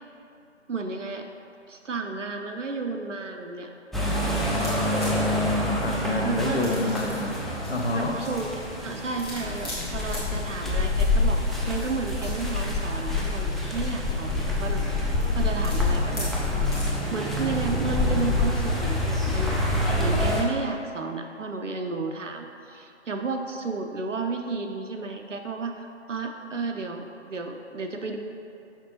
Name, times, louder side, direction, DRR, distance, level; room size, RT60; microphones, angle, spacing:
voice 1, 0.7-1.3 1.7-3.7 6.2-6.7 7.9-8.5 8.8-16.3 17.1-19.6 20.0-28.2, right 4 dB, 85° right, 4 dB, 0.7 m, -32 dB
sound 1, 3.9-20.4, left 2 dB, ahead, 0.3 m, -26 dB
sound 2, 4.6-17.2, left 1 dB, 20° left, 1.0 m, -42 dB
voice 2, 5.8-7.4 7.7-8.2, left 2 dB, 60° left, 1 dB, 0.9 m, -28 dB
6.0 x 5.9 x 2.8 m, 2.6 s
figure-of-eight pair, 160°, 36 cm